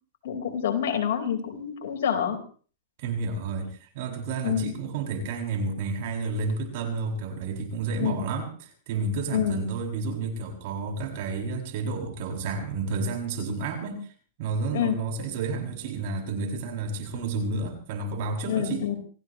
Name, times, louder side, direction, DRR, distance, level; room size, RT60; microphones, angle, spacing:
voice 1, 0.2-2.4 4.4-4.8 8.0-8.2 9.3-9.6 14.7-15.0 18.5-19.0, left 9 dB, 70° left, 3 dB, 4.7 m, -27 dB
voice 2, 3.0-14.1 14.4-18.9, right 4 dB, 55° right, 2 dB, 7.3 m, -31 dB
26.5 x 17.0 x 3.2 m, 0.42 s
hypercardioid pair, 130°, 0 cm